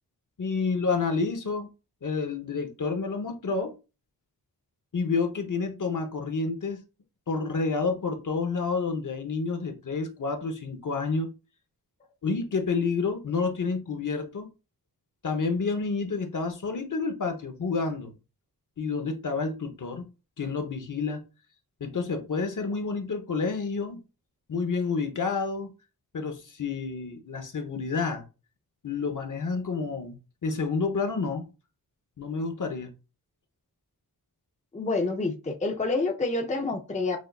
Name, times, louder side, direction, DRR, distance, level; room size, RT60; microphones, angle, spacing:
voice 1, 0.4-1.7 2.0-3.7 4.9-6.8 7.3-11.3 12.2-14.5 15.2-18.1 18.8-20.1 20.4-21.2 21.8-24.0 24.5-25.7 26.1-28.2 28.8-31.5 32.2-32.9, left 4 dB, 50° left, 0.9 m, -29 dB
voice 2, 34.7-37.2, left 3 dB, 20° left, 0.6 m, -28 dB
6.3 x 2.6 x 2.3 m
wide cardioid pair, 85°, 38 cm